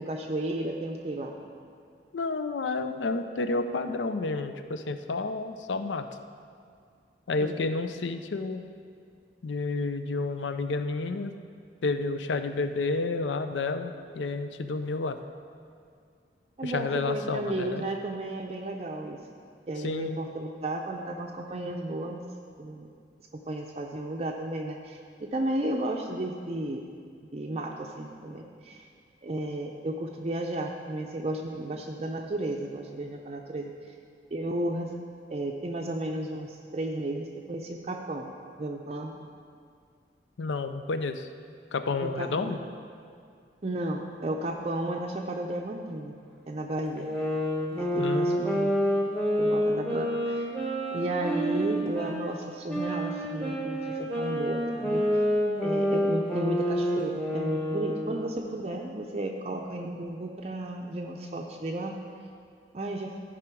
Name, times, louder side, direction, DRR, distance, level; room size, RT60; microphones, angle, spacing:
voice 1, 0.0-1.3 7.4-7.5 16.6-19.2 19.7-22.2 22.6-22.9 23.5-26.8 27.3-28.8 29.2-34.0 34.3-34.9 35.3-38.3 38.6-39.2 42.0-42.6 43.6-46.1 46.5-47.1 47.8-48.7 49.4-50.5 50.9-55.2 55.6-62.0 62.7-63.1, right 1 dB, 35° right, 1 dB, 0.5 m, -33 dB
voice 2, 2.1-6.1 7.3-8.6 9.4-11.3 11.8-15.2 16.6-17.8 19.8-20.2 40.4-41.3 41.7-42.6 47.9-48.4, left 3 dB, 90° left, 9 dB, 0.5 m, -30 dB
sound 1, 47.0-52.2 52.7-58.3, equal, 5° left, 1.2 m, -28 dB
14.5 x 4.9 x 4.6 m, 2.2 s
head